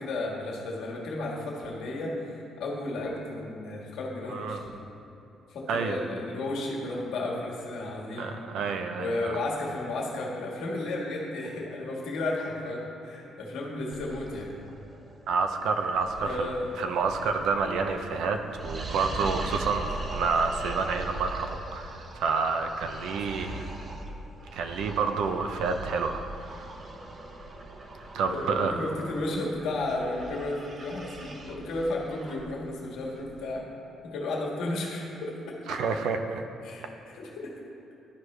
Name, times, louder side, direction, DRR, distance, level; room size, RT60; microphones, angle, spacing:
voice 1, 0.0-4.8 5.5-8.4 9.0-14.5 16.2-16.8 19.7-19.8 28.2-33.6 34.0-35.5 36.6-37.5, left 2 dB, 80° left, -2 dB, 1.6 m, -33 dB
voice 2, 4.3-4.6 5.7-6.1 8.2-9.4 15.3-23.6 24.5-26.2 26.5-26.6 28.1-28.8 35.7-36.4, right 5 dB, 80° right, 6 dB, 0.5 m, -29 dB
sound 1, 13.9-33.6, right 2 dB, 40° right, 0.7 m, -40 dB
12.5 x 4.7 x 3.2 m, 2.9 s
cardioid pair, 105°, 0 cm